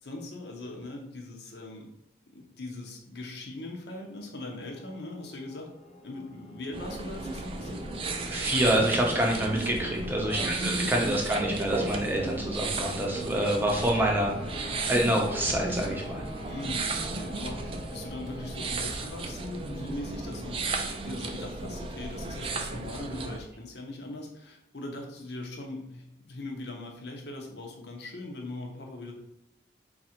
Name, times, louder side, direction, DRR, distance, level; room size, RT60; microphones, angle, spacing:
voice 1, 0.0-1.9 2.3-5.7 6.0-8.0 10.2-10.9 16.4-20.7 21.0-29.1, left 2 dB, 70° left, 1 dB, 0.9 m, -40 dB
sound 1, 4.5-18.7, left 2 dB, 40° left, 0.9 m, -47 dB
sound 2, 6.7-23.4, right 3 dB, 30° right, 0.4 m, -34 dB
voice 2, 8.3-16.2, right 1 dB, 10° right, -1 dB, 0.7 m, -27 dB
4.0 x 2.5 x 4.3 m, 0.88 s
head